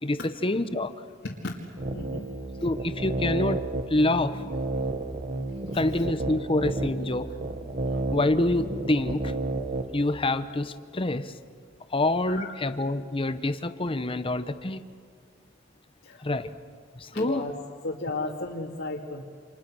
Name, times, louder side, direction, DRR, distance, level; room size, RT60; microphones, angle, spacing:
voice 1, 0.0-0.9 2.6-4.4 5.7-7.3 8.1-9.7 9.9-11.3 11.9-14.9 16.2-16.5 17.0-17.5, left 2 dB, 30° left, 11 dB, 1.0 m, -27 dB
sound 1, 1.8-9.9, right 2 dB, 40° right, 1.5 m, -31 dB
voice 2, 1.9-2.2 12.3-12.5 16.0-16.4 17.1-17.5 17.8-19.2, left 2 dB, 70° left, -3 dB, 2.3 m, -34 dB
29.0 x 27.5 x 6.3 m, 2.1 s
head